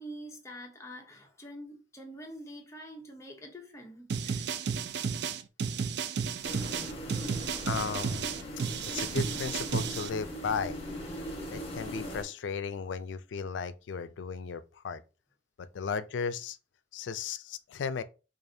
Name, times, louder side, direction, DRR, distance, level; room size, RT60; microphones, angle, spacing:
voice 1, 0.0-4.5, equal, 15° left, 0.8 m, -46 dB
sound 1, 4.1-10.1, right 6 dB, 65° right, 0.4 m, -33 dB
sound 2, 6.4-12.2, equal, 35° left, 1.3 m, -40 dB
voice 2, 7.6-8.2 8.9-10.8 11.5-15.0 15.6-16.6 16.9-18.0, left 5 dB, 90° left, 0.4 m, -35 dB
4.8 x 2.5 x 2.7 m
head